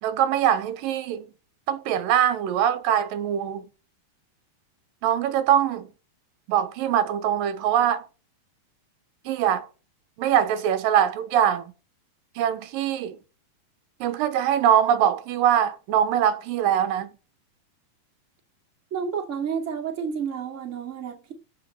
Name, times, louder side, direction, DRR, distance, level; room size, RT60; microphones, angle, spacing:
voice 1, 0.0-1.3 1.7-3.7 5.0-5.9 6.5-8.0 9.3-9.7 10.2-11.7 12.4-13.2 14.0-17.1, right 10 dB, 85° right, 2.7 m, -22 dB
voice 2, 18.9-21.3, right 6 dB, 25° right, 2.2 m, -30 dB
14.5 x 5.6 x 6.4 m
omnidirectional pair, 4.0 m